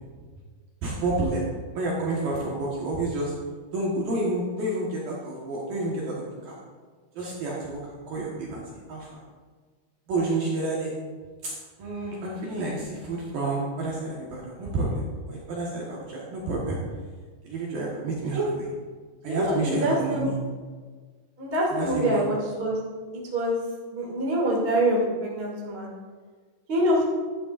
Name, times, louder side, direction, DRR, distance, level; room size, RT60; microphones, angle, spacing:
voice 1, 0.8-1.5 1.7-3.3 3.7-6.6 7.2-8.6 8.9-9.2 10.1-10.9 11.4-11.5 11.8-16.8 17.4-18.7 19.2-20.4 21.7-22.2, right 2 dB, 65° right, -4 dB, 2.3 m, -29 dB
voice 2, 19.2-20.3 21.4-22.7 23.3-23.6 23.9-25.9 26.7-27.0, right 1 dB, 40° right, -4 dB, 0.8 m, -25 dB
12.0 x 11.0 x 2.5 m, 1.5 s
omnidirectional pair, 5.7 m